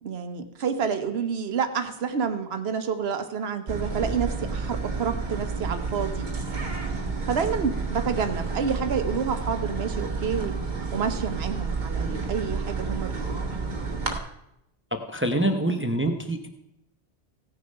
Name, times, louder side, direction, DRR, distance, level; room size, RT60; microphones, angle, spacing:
voice 1, 0.0-6.3 7.3-10.5 10.9-13.5 15.7-15.8, right 6 dB, 70° right, 8 dB, 1.2 m, -29 dB
sound 1, 3.7-14.2, right 4 dB, 45° right, 1.3 m, -30 dB
voice 2, 14.9-16.5, right 1 dB, 15° right, 5 dB, 0.7 m, -26 dB
16.5 x 6.7 x 5.4 m, 0.82 s
omnidirectional pair, 1.1 m